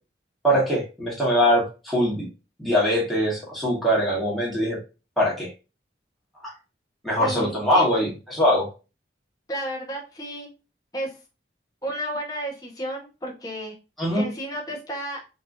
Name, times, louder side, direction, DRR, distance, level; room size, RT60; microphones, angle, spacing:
voice 1, 0.4-2.2 2.6-4.8 5.2-5.5 6.4-6.5 7.0-8.7 14.0-14.3, equal, ahead, -5 dB, 1.6 m, -22 dB
voice 2, 7.2-8.0 9.5-10.5 10.9-11.1 11.8-13.7 14.1-15.2, right 1 dB, 20° left, -1 dB, 1.1 m, -32 dB
4.3 x 2.9 x 2.6 m, 0.30 s
head